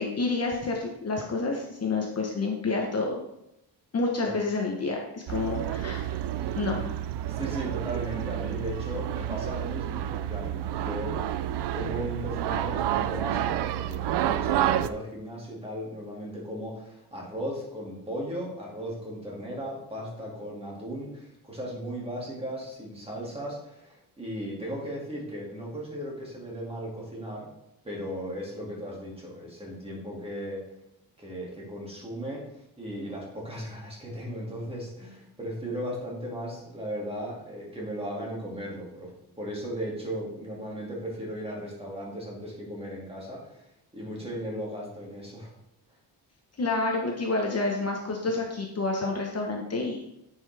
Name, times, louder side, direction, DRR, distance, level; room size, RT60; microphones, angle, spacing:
voice 1, 0.0-3.1 3.9-6.0 6.5-6.8 46.6-50.1, left 3 dB, 40° left, 0 dB, 1.0 m, -29 dB
sound 1, 5.3-14.9, right 11 dB, 80° right, 0.5 m, -29 dB
voice 2, 6.4-6.8 7.3-11.2 11.7-27.5 27.8-30.6 31.2-43.7 43.9-45.5, equal, 15° right, -3 dB, 2.2 m, -36 dB
9.8 x 5.6 x 3.4 m, 0.83 s
wide cardioid pair, 170°, 40 cm